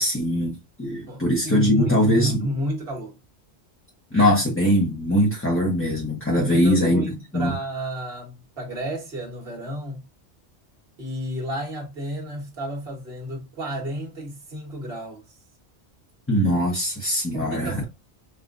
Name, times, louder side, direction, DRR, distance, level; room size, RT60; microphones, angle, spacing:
voice 1, 0.0-2.5 4.1-7.5 16.3-17.8, equal, 10° left, 0.9 m, -21 dB
voice 2, 1.1-3.2 6.3-10.1 11.0-15.2 17.3-17.8, equal, 60° right, 1.7 m, -31 dB
5.4 x 2.4 x 2.5 m
omnidirectional pair, 1.2 m